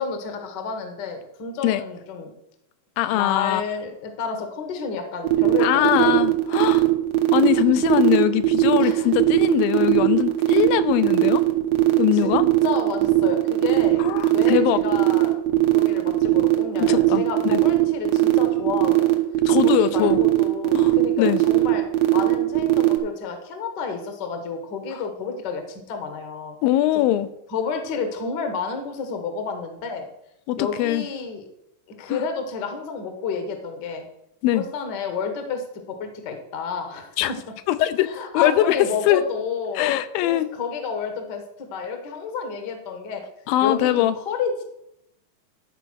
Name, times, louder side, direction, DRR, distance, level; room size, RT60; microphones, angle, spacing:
voice 1, 0.0-2.3 3.1-6.2 7.6-7.7 8.8-9.1 12.1-14.0 14.3-15.4 15.7-19.1 19.6-21.8 22.1-26.6 27.5-30.1 30.6-31.4 32.0-34.0 34.5-37.1 38.0-39.9 40.2-41.4 41.7-43.2 43.6-44.6, left 5 dB, 60° left, 1.1 m, -30 dB
voice 2, 3.0-3.6 5.6-6.9 7.3-11.4 12.0-12.5 14.0-14.8 16.8-17.6 19.5-20.2 20.7-21.4 24.9-25.0 26.6-27.3 30.5-31.0 32.1-32.2 34.4-34.7 37.2-37.3 37.7-38.1 38.3-39.2 39.8-40.5 43.5-44.2, left 13 dB, 85° left, 2.3 m, -21 dB
sound 1, 5.2-23.0, right 18 dB, 75° right, 1.4 m, -18 dB
12.0 x 4.6 x 6.2 m
omnidirectional pair, 4.1 m